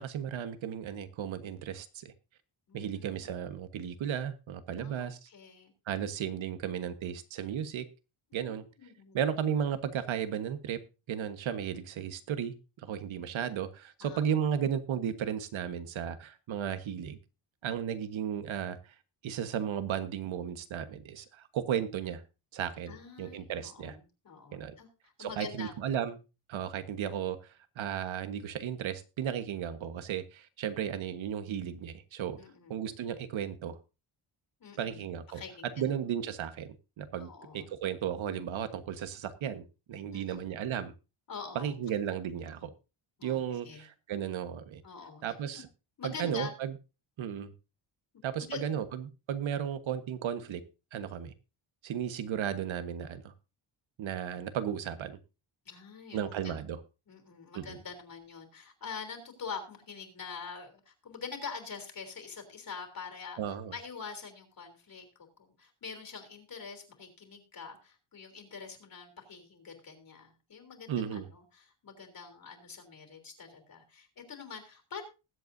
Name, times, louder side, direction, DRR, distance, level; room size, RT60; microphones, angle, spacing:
voice 1, 0.0-2.1 2.7-5.3 5.9-7.8 8.3-8.6 9.1-10.8 11.1-12.5 12.8-17.2 17.6-18.9 19.2-22.2 22.5-24.0 24.5-24.7 25.2-26.2 26.5-32.4 32.7-33.8 34.8-35.4 35.8-40.9 41.5-42.7 43.2-44.8 45.2-45.7 46.0-46.7 47.2-47.5 48.2-50.6 50.9-51.3 51.8-53.3 54.0-55.2 56.1-56.8 57.5-57.8 63.4-63.7 70.9-71.3, right 9 dB, 70° right, 1.4 m, -34 dB
voice 2, 2.7-3.3 4.8-5.7 8.4-9.2 12.0-12.2 13.2-13.3 14.0-14.2 17.7-17.8 22.9-25.7 32.4-32.8 34.6-35.0 35.3-36.0 37.2-37.7 40.1-40.5 41.3-41.7 43.2-43.9 44.8-45.2 45.5-45.6 46.0-46.5 48.4-48.6 55.6-56.6 57.1-63.4 63.7-65.1 65.4-75.0, left 5 dB, 45° left, 3.4 m, -45 dB
20.5 x 8.1 x 2.7 m
cardioid pair, 135°, 49 cm